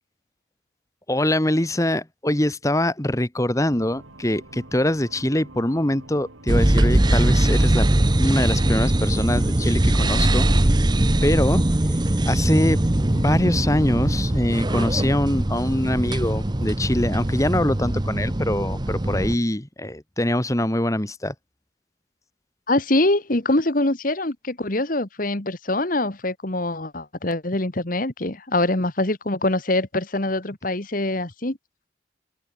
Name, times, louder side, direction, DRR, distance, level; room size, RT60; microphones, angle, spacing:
voice 1, 1.1-7.8 8.2-10.5 11.2-11.6 12.3-12.9 13.1-21.3, left 1 dB, 15° left, 1.3 m, -23 dB
sound 1, 3.7-8.7, right 1 dB, 85° right, 3.5 m, -45 dB
sound 2, 6.5-19.4, right 1 dB, 20° right, 0.9 m, -21 dB
voice 2, 22.7-31.6, left 2 dB, 45° left, 1.7 m, -24 dB
open air
head